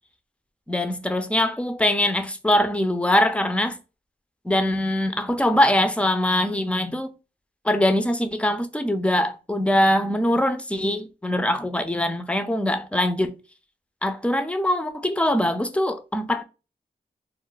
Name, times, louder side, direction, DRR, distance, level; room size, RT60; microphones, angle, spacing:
voice 1, 0.7-3.8 4.4-7.1 7.6-13.4 14.0-16.4, left 1 dB, 5° left, 0.5 m, -22 dB
2.5 x 2.1 x 3.8 m
cardioid pair, 45°, 18 cm